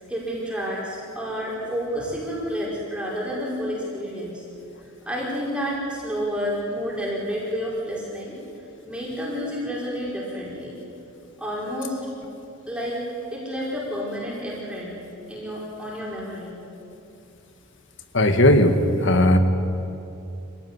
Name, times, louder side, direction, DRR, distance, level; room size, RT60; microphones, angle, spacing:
voice 1, 0.1-4.4 5.1-8.4 8.8-10.8 11.4-12.0 12.7-13.0 13.3-14.9 15.3-16.6, equal, 5° right, -5 dB, 5.4 m, -30 dB
voice 2, 18.1-18.8 19.0-19.4, left 1 dB, 60° left, 8 dB, 1.8 m, -16 dB
26.0 x 16.5 x 9.8 m, 2.7 s
head